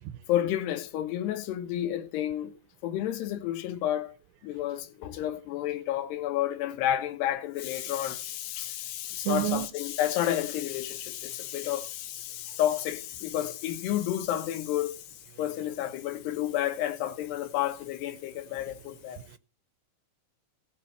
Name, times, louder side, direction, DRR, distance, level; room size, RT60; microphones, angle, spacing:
voice 1, 0.3-2.5 2.8-4.1 4.4-15.0 15.4-19.2, left 12 dB, 75° left, 3.1 m, -31 dB
voice 2, 9.2-9.7 18.9-19.4, right 17 dB, 85° right, 3.0 m, -31 dB
18.0 x 6.5 x 4.3 m
omnidirectional pair, 5.0 m